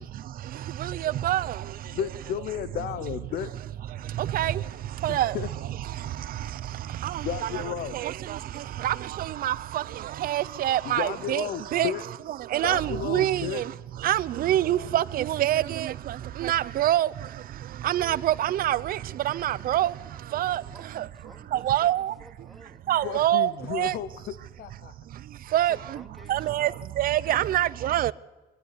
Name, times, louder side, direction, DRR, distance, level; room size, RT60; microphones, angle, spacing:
voice 1, 0.1-2.0 3.9-11.9 12.3-21.1 21.5-22.2 22.9-24.0 24.8-26.0 26.3-28.1, right 13 dB, 60° right, 0.7 m, -27 dB
voice 2, 1.9-3.5 5.1-5.5 7.2-8.0 10.8-12.0 12.6-13.6 23.0-24.9, left 9 dB, 65° left, 0.9 m, -33 dB
voice 3, 2.9-3.5 20.7-22.8 25.6-26.9, equal, ahead, 2.8 m, -53 dB
23.0 x 12.0 x 9.8 m
cardioid pair, 110°, 17 cm